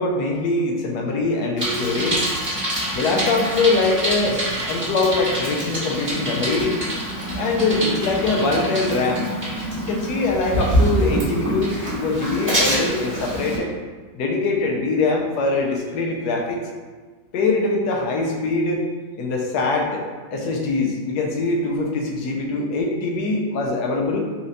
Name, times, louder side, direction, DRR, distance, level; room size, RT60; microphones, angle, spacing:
voice 1, 0.0-2.2 2.9-6.8 7.3-9.3 9.7-13.7 14.1-16.6 17.3-18.8 19.2-24.2, left 3 dB, 85° left, 0 dB, 1.1 m, -23 dB
Bicycle, 1.6-13.6, right 1 dB, 10° right, 1.3 m, -25 dB
4.1 x 3.0 x 2.5 m, 1.4 s
omnidirectional pair, 1.7 m